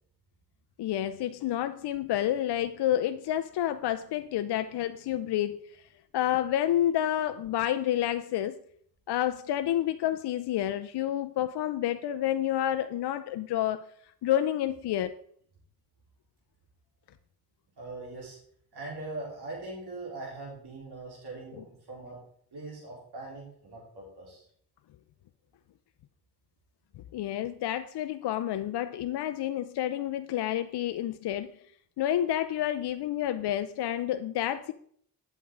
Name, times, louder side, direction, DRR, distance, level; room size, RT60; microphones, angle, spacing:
voice 1, 0.8-5.6 6.1-8.6 9.1-13.8 14.2-15.1 21.5-21.6 27.1-31.5 32.0-34.7, left 12 dB, 75° left, 11 dB, 0.5 m, -29 dB
voice 2, 17.8-18.4 18.7-22.2 22.5-24.4, right 2 dB, 75° right, -4 dB, 3.8 m, -41 dB
8.3 x 7.5 x 3.7 m, 0.62 s
cardioid pair, 55°, 40 cm